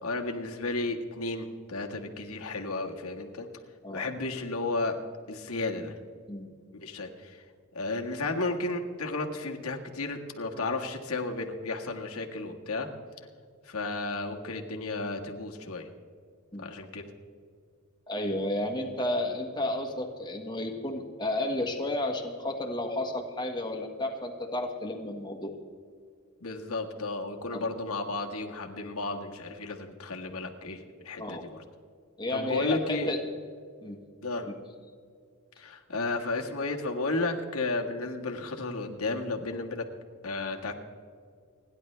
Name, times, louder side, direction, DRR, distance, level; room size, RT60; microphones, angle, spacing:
voice 1, 0.0-3.5 3.9-4.9 5.3-5.9 6.7-7.4 7.7-12.9 13.6-15.9 16.6-17.0 26.4-31.6 32.3-33.1 34.2-34.5 35.6-39.8 40.2-40.7, left 3 dB, 85° left, 2 dB, 1.6 m, -33 dB
voice 2, 18.1-25.5 27.5-27.7 31.2-31.4 32.2-33.2 33.8-34.0 34.4-34.5, left 1 dB, 20° left, 1 dB, 1.5 m, -32 dB
30.0 x 10.5 x 3.3 m, 2.2 s
head